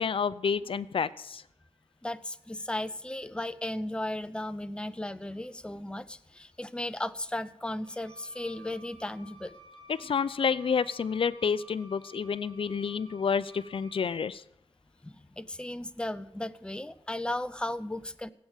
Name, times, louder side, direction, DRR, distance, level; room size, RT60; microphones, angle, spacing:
voice 1, 0.0-1.4 9.9-14.4, left 6 dB, 60° left, 16 dB, 0.6 m, -29 dB
voice 2, 2.0-9.6 15.0-18.3, left 1 dB, 10° left, 12 dB, 0.6 m, -35 dB
Wind instrument woodwind instrument, 7.7-14.1, equal, 60° right, 6.1 m, -54 dB
16.0 x 8.7 x 7.3 m, 0.80 s
wide cardioid pair, 110°, 11 cm